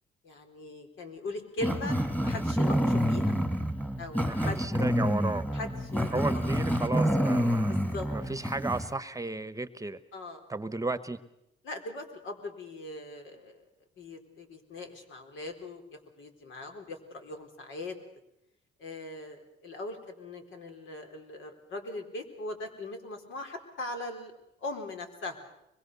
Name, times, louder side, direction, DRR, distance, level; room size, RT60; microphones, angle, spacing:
voice 1, 0.2-2.0 2.2-3.3 4.0-4.6 5.5-6.5 7.7-8.1 10.1-10.4 11.6-13.7 14.0-18.0 18.8-24.3 24.6-25.4, left 2 dB, 75° left, 5 dB, 4.1 m, -40 dB
Growling, 1.6-8.9, equal, 5° left, 2.1 m, -28 dB
voice 2, 4.2-5.4 6.1-7.8 8.1-10.0 10.5-11.2, right 2 dB, 15° right, 14 dB, 1.1 m, -34 dB
24.5 x 22.0 x 6.8 m, 0.83 s
cardioid pair, 90°, 20 cm